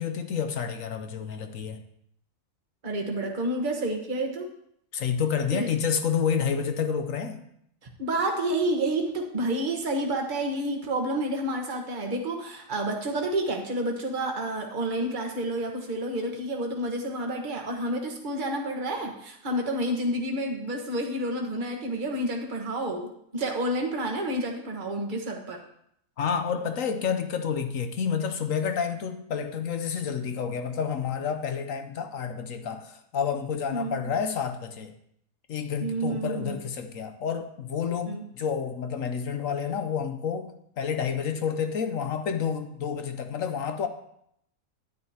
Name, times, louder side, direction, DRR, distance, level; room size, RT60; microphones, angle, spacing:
voice 1, 0.0-1.8 4.9-7.4 26.2-34.9 35.5-40.5 40.8-43.9, left 7 dB, 60° left, 7 dB, 1.0 m, -29 dB
voice 2, 2.8-4.5 5.5-5.7 8.0-25.6 33.7-34.0 35.8-36.6 38.0-38.3, right 1 dB, 30° right, 2 dB, 1.3 m, -29 dB
10.5 x 10.0 x 2.9 m, 0.73 s
omnidirectional pair, 1.7 m